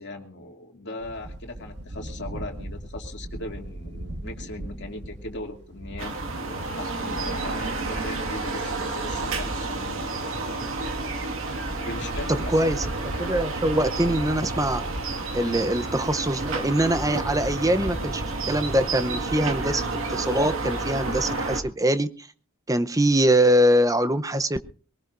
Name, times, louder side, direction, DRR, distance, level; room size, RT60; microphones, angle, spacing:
voice 1, 0.0-6.1 6.4-10.1 11.8-12.9 15.5-15.6, left 2 dB, 55° left, 2 dB, 2.6 m, -38 dB
sound 1, 1.0-6.3, right 1 dB, 55° right, 1.6 m, -38 dB
sound 2, 6.0-21.6, right 2 dB, 70° right, 1.9 m, -30 dB
voice 2, 12.3-12.8 13.2-14.8 15.3-22.3 22.7-24.6, right 1 dB, 15° right, 10 dB, 0.7 m, -23 dB
22.5 x 18.5 x 2.6 m, 0.40 s
head